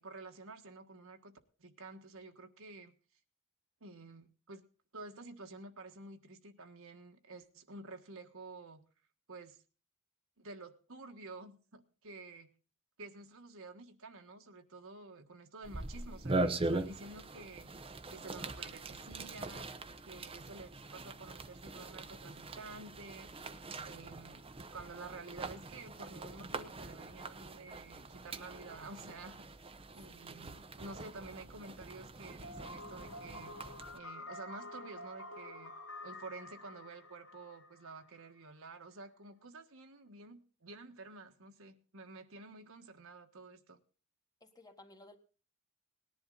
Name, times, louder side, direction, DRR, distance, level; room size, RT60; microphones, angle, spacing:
voice 1, 0.0-2.9 3.8-4.6 4.9-8.8 9.3-9.6 10.4-12.5 13.0-19.7 20.1-23.3 23.8-29.5 29.9-35.7 36.0-43.8, right 3 dB, 65° right, 5 dB, 1.5 m, -50 dB
sound 1, 15.6-34.0, right 2 dB, 25° right, 0.9 m, -42 dB
voice 2, 30.1-30.6 44.4-45.2, left 1 dB, 15° left, 4 dB, 1.7 m, -58 dB
sound 2, 32.4-38.3, left 1 dB, 65° left, 1.7 m, -49 dB
19.0 x 11.0 x 4.0 m, 0.37 s
head